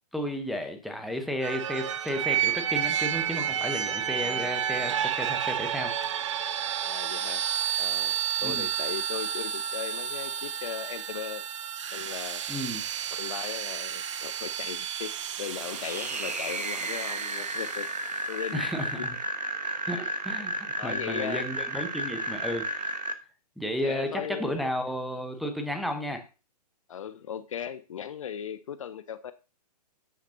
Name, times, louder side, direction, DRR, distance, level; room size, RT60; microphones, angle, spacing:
voice 1, 0.1-5.9 8.4-8.7 12.5-12.8 18.5-19.2 19.9-20.5 20.8-22.9 23.6-26.2, equal, ahead, 1.0 m, -33 dB
sound 1, 1.4-18.1, right 9 dB, 45° right, 0.6 m, -31 dB
voice 2, 6.8-7.4 7.8-11.4 11.9-12.4 13.1-15.1 15.4-17.9 18.3-18.7 19.0-19.1 20.0-20.1 20.8-21.5 23.8-24.7 26.9-29.3, left 9 dB, 50° left, 0.6 m, -37 dB
sound 2, 15.4-23.1, right 2 dB, 75° right, 1.3 m, -33 dB
11.5 x 8.3 x 2.8 m
figure-of-eight pair, 120°, 21 cm